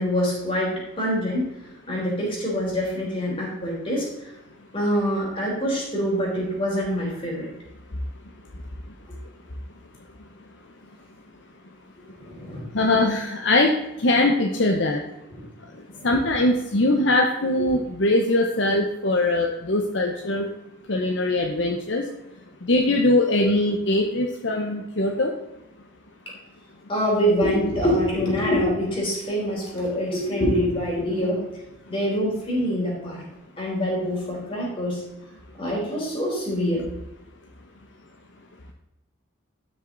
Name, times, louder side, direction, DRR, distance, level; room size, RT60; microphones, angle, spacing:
voice 1, 0.0-1.5 1.9-4.1 4.7-7.5 12.2-12.6 16.0-16.1 17.6-17.7 26.9-31.4 31.9-33.2 33.6-35.0 35.6-36.8, equal, 25° left, -4 dB, 3.8 m, -25 dB
voice 2, 12.7-13.7 14.0-15.0 16.0-20.5 20.9-22.0 22.7-25.3, left 2 dB, 60° left, 2 dB, 0.8 m, -21 dB
12.5 x 6.3 x 3.9 m, 0.91 s
head